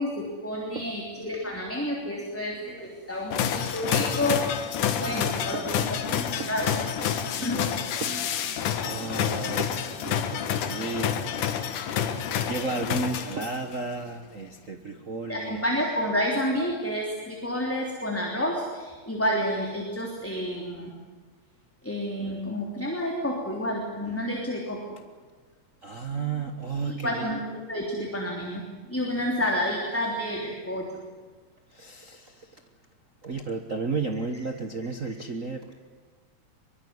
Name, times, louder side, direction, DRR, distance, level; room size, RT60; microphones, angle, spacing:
voice 1, 0.0-4.5 5.0-6.0 6.5-6.7 7.4-7.6 11.5-11.6 15.3-20.9 21.8-24.8 26.8-27.4 27.7-30.9, equal, 5° left, -1 dB, 3.1 m, -29 dB
sound 1, 3.3-13.7, left 9 dB, 85° left, 3.0 m, -28 dB
voice 2, 4.8-5.2 5.5-6.6 7.0-12.0 12.3-15.6 25.8-27.3 31.7-32.6 33.2-35.9, right 4 dB, 65° right, 5 dB, 0.7 m, -34 dB
23.5 x 22.0 x 9.6 m, 1.4 s
omnidirectional pair, 3.5 m